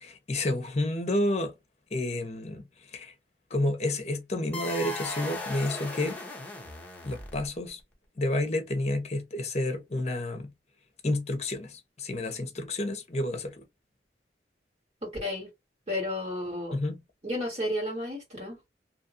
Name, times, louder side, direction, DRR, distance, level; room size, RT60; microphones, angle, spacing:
voice 1, 0.0-1.5 1.9-2.6 2.9-3.1 3.5-6.2 7.0-7.8 8.2-10.5 11.0-13.6 16.7-17.0, left 1 dB, 40° left, 0.8 m, -30 dB
sound 1, 4.5-7.7, left 2 dB, 10° left, 0.9 m, -37 dB
voice 2, 15.0-15.5 15.9-16.8 17.2-18.6, left 1 dB, 35° right, 1.7 m, -32 dB
2.8 x 2.5 x 2.5 m
head